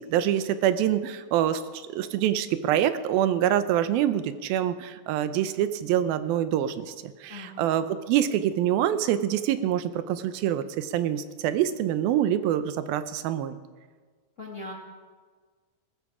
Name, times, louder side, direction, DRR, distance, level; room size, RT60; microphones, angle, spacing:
voice 1, 0.1-6.9 7.2-13.6, right 11 dB, 90° right, 11 dB, 2.6 m, -25 dB
voice 2, 7.3-7.7 14.4-14.7, left 2 dB, 25° left, -2 dB, 1.8 m, -40 dB
20.5 x 13.5 x 4.9 m, 1.5 s
omnidirectional pair, 4.2 m